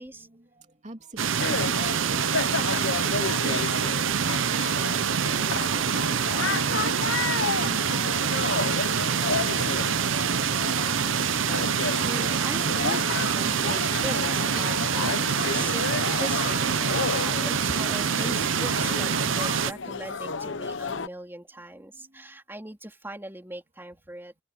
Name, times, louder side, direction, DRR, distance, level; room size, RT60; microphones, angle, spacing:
voice 1, 0.0-10.9 21.7-22.4, right 1 dB, 35° right, 3.1 m, -49 dB
sound 1, 1.2-19.7, right 7 dB, 90° right, 0.7 m, -26 dB
sound 2, 1.4-21.1, left 4 dB, 70° left, 1.0 m, -32 dB
voice 2, 11.7-24.3, right 1 dB, 10° right, 3.7 m, -40 dB
open air
head